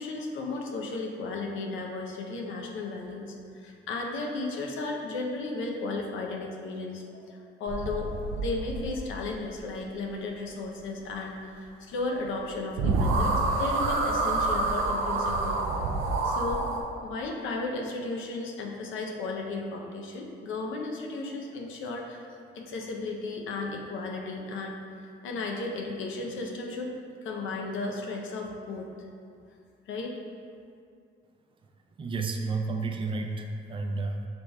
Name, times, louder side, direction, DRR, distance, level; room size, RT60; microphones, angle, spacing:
voice 1, 0.0-8.1 8.4-15.6 16.2-16.7 17.0-22.3 22.5-27.0 27.2-29.1 29.9-30.2, left 3 dB, 85° left, 1 dB, 0.6 m, -34 dB
sound 1, 7.7-9.3 12.4-12.5 12.8-16.8, right 3 dB, 80° right, 0.6 m, -27 dB
voice 2, 32.0-34.3, right 3 dB, 25° right, 3 dB, 0.4 m, -31 dB
6.5 x 3.4 x 2.2 m, 2.4 s
cardioid pair, 90°, 20 cm